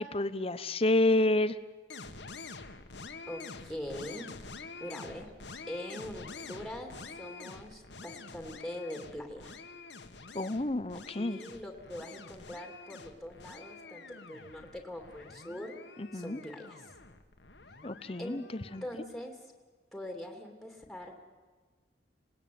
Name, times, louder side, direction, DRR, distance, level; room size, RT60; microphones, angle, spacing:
voice 1, 0.0-1.6 10.3-11.4 16.0-16.4 17.8-18.8, left 2 dB, 30° left, 14 dB, 0.9 m, -29 dB
sound 1, 1.9-18.9, left 4 dB, 75° left, 1.8 m, -47 dB
voice 2, 3.3-4.3 4.8-5.3 5.7-9.6 11.1-15.7 16.1-16.9 18.2-18.4 18.8-19.5 19.9-21.3, left 1 dB, ahead, 3 dB, 2.8 m, -43 dB
26.5 x 19.0 x 9.4 m, 1.4 s
head